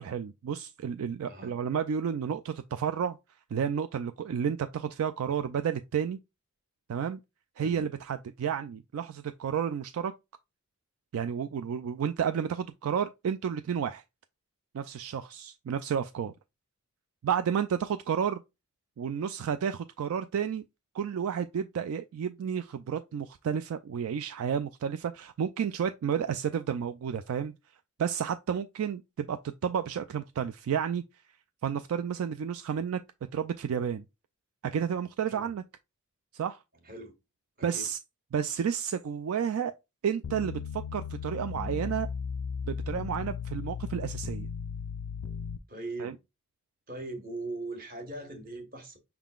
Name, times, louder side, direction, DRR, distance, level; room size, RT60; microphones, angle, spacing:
voice 1, 0.0-3.2 3.5-6.2 6.9-7.2 7.6-10.1 11.1-14.0 14.7-16.3 17.2-18.4 19.0-20.6 20.9-27.5 28.0-31.0 31.6-33.0 33.3-34.0 34.6-35.6 36.3-36.6 37.6-38.0 38.3-39.7 40.0-42.1 42.7-44.5 46.0-46.2, right 7 dB, 70° right, 0.3 m, -31 dB
sound 1, 40.2-45.6, left 6 dB, 70° left, 0.4 m, -36 dB
voice 2, 45.7-46.2 46.9-49.0, right 2 dB, 40° right, 1.3 m, -40 dB
5.7 x 3.7 x 2.3 m
head